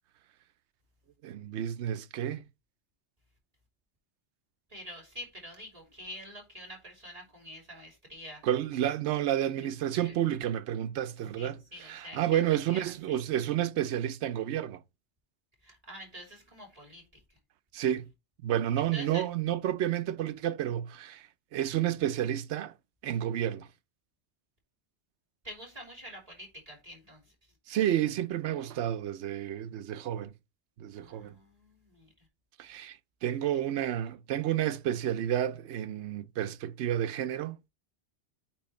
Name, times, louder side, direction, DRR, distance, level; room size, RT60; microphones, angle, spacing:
voice 1, 1.2-2.4 8.4-14.8 17.7-18.1 18.4-22.7 23.0-23.7 27.7-30.3 30.8-31.3 32.6-37.6, right 11 dB, 90° right, 0.9 m, -30 dB
voice 2, 4.7-8.4 9.6-9.7 10.0-10.1 11.4-13.2 15.6-17.2 18.9-19.2 25.4-27.2 30.9-32.1, equal, 35° right, 3.1 m, -46 dB
8.7 x 3.1 x 4.3 m
omnidirectional pair, 1.1 m